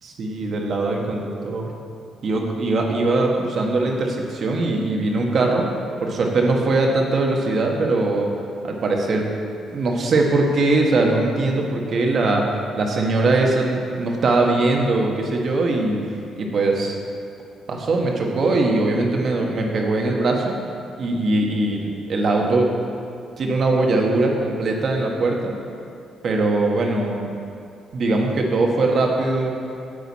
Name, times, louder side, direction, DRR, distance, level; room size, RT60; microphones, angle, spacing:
voice 1, 0.2-1.7 2.2-8.3 8.6-9.3 9.7-12.5 12.8-17.0 17.7-20.6 21.0-22.7 23.4-25.5 26.2-27.3 27.9-29.5, right 2 dB, 55° right, 1 dB, 1.3 m, -21 dB
9.7 x 8.0 x 4.2 m, 2.4 s
cardioid pair, 90°, 0 cm